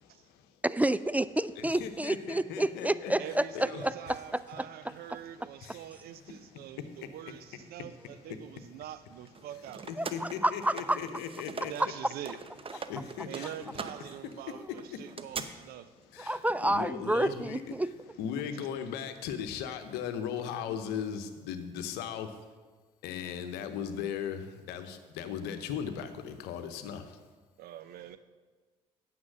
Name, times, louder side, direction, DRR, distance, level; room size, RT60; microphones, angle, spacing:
voice 1, 0.6-4.9 10.0-11.0 11.8-11.9 14.5-14.7 16.2-17.9, right 1 dB, 10° right, 16 dB, 0.3 m, -30 dB
voice 2, 1.6-3.1 3.5-3.8 10.1-11.7 12.9-13.7 16.2-16.3 16.6-17.6 18.2-22.3 23.0-24.4 24.7-27.0, left 8 dB, 75° left, 9 dB, 0.9 m, -37 dB
voice 3, 3.2-9.9 11.6-12.4 13.2-15.9 18.5-18.6 27.6-28.2, right 11 dB, 65° right, 13 dB, 0.6 m, -44 dB
sound 1, 9.3-11.9 12.1-15.4, right 5 dB, 35° right, 0.8 m, -42 dB
9.5 x 6.9 x 6.3 m, 1.4 s
hypercardioid pair, 55°, 17 cm